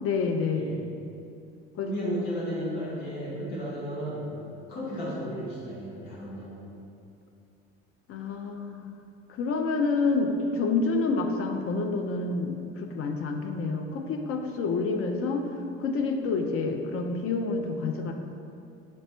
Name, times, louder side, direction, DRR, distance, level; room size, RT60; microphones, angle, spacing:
voice 1, 0.0-0.7 1.8-1.9 8.1-8.9 9.3-15.5 15.8-18.1, left 4 dB, 50° left, 4 dB, 0.5 m, -28 dB
voice 2, 0.5-0.9 1.8-4.3 4.7-6.7, equal, 85° left, -6 dB, 1.1 m, -34 dB
4.2 x 2.1 x 4.3 m, 2.6 s
hypercardioid pair, 65°, 30 cm